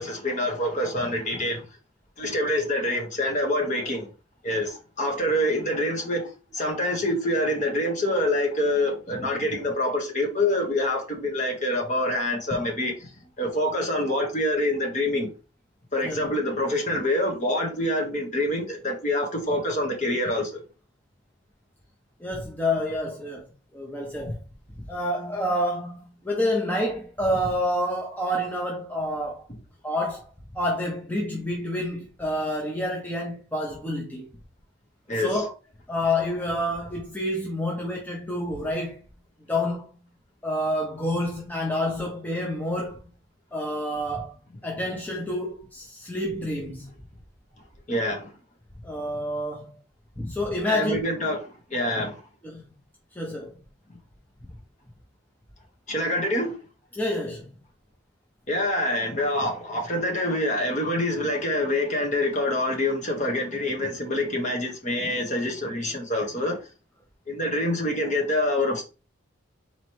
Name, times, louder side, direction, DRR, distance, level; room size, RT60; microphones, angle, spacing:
voice 1, 0.0-1.6 2.2-4.1 4.4-13.1 13.4-15.3 15.9-20.6 35.1-35.4 47.9-48.3 50.6-52.2 55.9-56.6 58.5-66.7 67.3-68.8, left 1 dB, 35° left, 1.0 m, -26 dB
voice 2, 22.2-23.4 23.7-24.4 24.9-29.4 29.8-30.3 30.5-34.3 35.2-35.5 35.9-39.0 39.5-39.9 40.4-43.0 43.5-44.3 44.6-46.9 48.8-49.7 50.2-51.0 52.4-52.6 53.1-53.5 57.0-57.5, left 1 dB, 10° left, 0.6 m, -28 dB
4.2 x 3.0 x 3.0 m
head